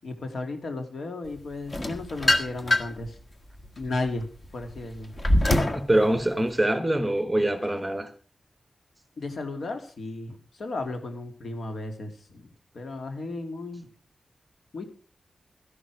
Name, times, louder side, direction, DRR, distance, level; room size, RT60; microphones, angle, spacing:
voice 1, 0.0-3.2 3.8-4.3 4.5-5.1 9.2-13.9 14.7-14.9, left 2 dB, 70° left, 2.7 m, -34 dB
sound 1, 1.7-3.1 3.6-5.9, left 1 dB, 30° left, 1.5 m, -24 dB
voice 2, 5.7-8.1, right 1 dB, 10° right, 1.5 m, -24 dB
13.0 x 11.5 x 4.8 m
wide cardioid pair, 145°, 0 cm